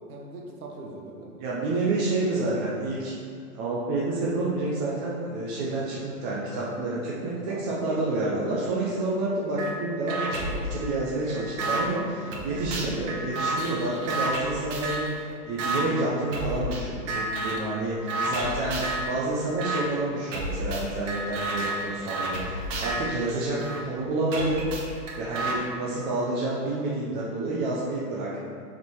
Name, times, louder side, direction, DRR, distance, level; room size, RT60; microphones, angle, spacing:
voice 1, 0.1-1.4 7.5-7.7 12.1-13.1, right 2 dB, 70° right, -1 dB, 1.5 m, -42 dB
voice 2, 1.4-3.1 3.5-24.7 25.2-28.4, right 2 dB, 15° right, -6 dB, 0.5 m, -29 dB
sound 1, 9.6-9.7 10.1-11.8 12.3-15.1 15.6-15.8 16.3-16.8 17.1-17.7 18.1-19.1 19.6-19.8 20.3-23.8 24.3-25.6, right 2 dB, 50° right, 1.7 m, -31 dB
6.3 x 5.8 x 4.5 m, 2.4 s
hypercardioid pair, 135°, 47 cm